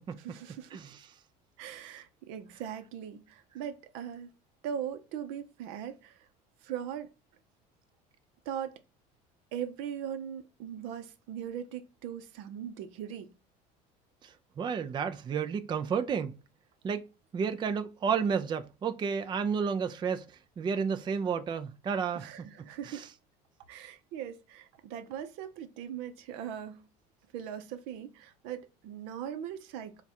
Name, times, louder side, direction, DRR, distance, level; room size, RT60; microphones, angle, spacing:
voice 1, 0.2-0.8 1.6-4.3 4.6-6.3 6.6-7.1 8.4-8.8 9.5-13.3 22.1-23.1 23.7-26.9 27.3-30.0, right 9 dB, 75° right, 0.7 m, -40 dB
voice 2, 14.2-16.3 16.8-17.1 17.3-20.3 20.6-22.3 22.9-23.0, right 6 dB, 25° right, 0.4 m, -31 dB
3.6 x 2.4 x 4.2 m
supercardioid pair, 100°, 19 cm